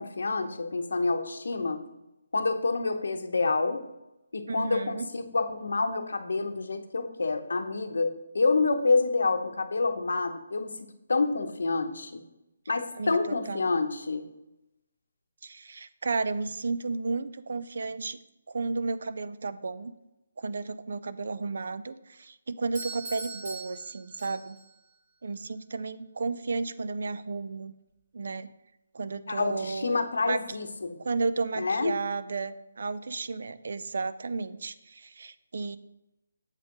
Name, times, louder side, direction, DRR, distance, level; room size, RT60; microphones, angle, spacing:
voice 1, 0.0-1.8 2.3-3.8 4.3-12.2 12.7-14.3 29.3-31.0 31.6-32.0, left 3 dB, 70° left, 7 dB, 0.8 m, -28 dB
voice 2, 4.5-5.1 12.9-13.2 13.5-13.7 15.4-18.2 18.5-19.9 20.4-24.6 25.2-27.7 28.1-28.5 28.9-30.4 31.0-35.8, right 4 dB, 50° right, 13 dB, 0.4 m, -33 dB
Doorbell, 22.8-24.8, right 3 dB, 25° right, 1.8 m, -41 dB
7.3 x 5.2 x 3.9 m, 0.92 s
hypercardioid pair, 175°, 0 cm